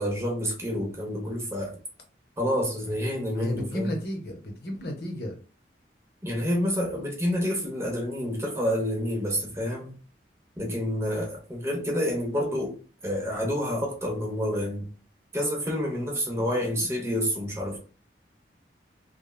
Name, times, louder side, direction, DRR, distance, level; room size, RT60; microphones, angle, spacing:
voice 1, 0.0-1.8 2.4-4.0 6.2-10.0 10.6-14.9 15.3-17.8, equal, 15° right, 0.7 m, -28 dB
voice 2, 3.3-5.4, left 1 dB, 60° left, 0.8 m, -33 dB
3.3 x 2.1 x 2.2 m
head